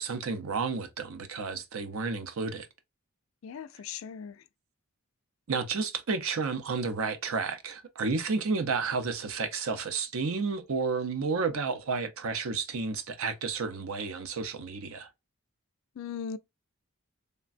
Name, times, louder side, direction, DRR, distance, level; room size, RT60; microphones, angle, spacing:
voice 1, 0.0-2.7 5.5-15.1, right 4 dB, 70° right, 0.6 m, -31 dB
voice 2, 3.4-4.4 16.0-16.4, left 7 dB, 65° left, 0.3 m, -38 dB
3.3 x 2.2 x 2.4 m
head